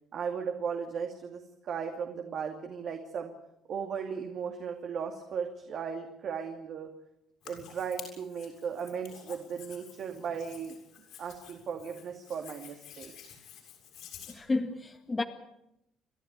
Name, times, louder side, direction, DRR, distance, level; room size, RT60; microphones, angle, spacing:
voice 1, 0.1-3.3 3.7-6.9 7.4-10.7 11.2-13.3, right 6 dB, 55° right, 2.5 m, -36 dB
Hands, 7.4-14.3, left 9 dB, 70° left, 6.9 m, -50 dB
voice 2, 14.3-15.2, left 3 dB, 20° left, 1.8 m, -31 dB
29.5 x 11.5 x 9.6 m
cardioid pair, 110°, 0 cm